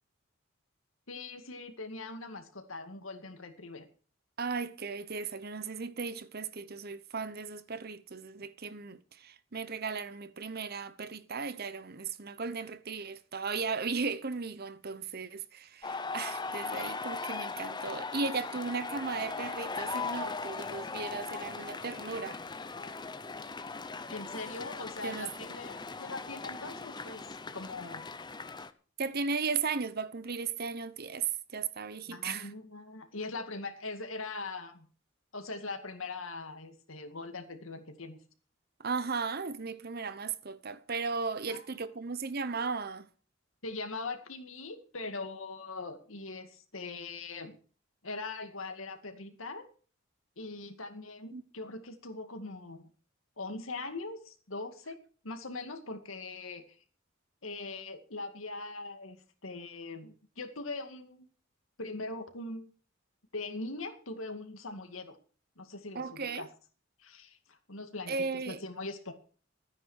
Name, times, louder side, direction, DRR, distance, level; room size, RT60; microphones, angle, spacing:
voice 1, 1.1-3.9 24.1-28.0 32.1-34.9 35.3-38.2 41.5-41.7 43.6-47.6 48.0-49.7 50.4-52.9 53.4-55.0 55.2-56.8 57.4-59.2 59.4-61.3 61.8-62.7 63.3-65.2 65.6-66.5 67.0-69.1, left 3 dB, 85° left, 2.2 m, -41 dB
voice 2, 4.4-22.4 25.0-25.3 29.0-32.5 38.8-43.1 51.3-51.4 65.9-66.5 68.1-68.6, right 4 dB, 50° right, 0.9 m, -36 dB
sound 1, 15.8-28.7, left 4 dB, 20° left, 0.8 m, -39 dB
13.5 x 9.8 x 6.5 m
head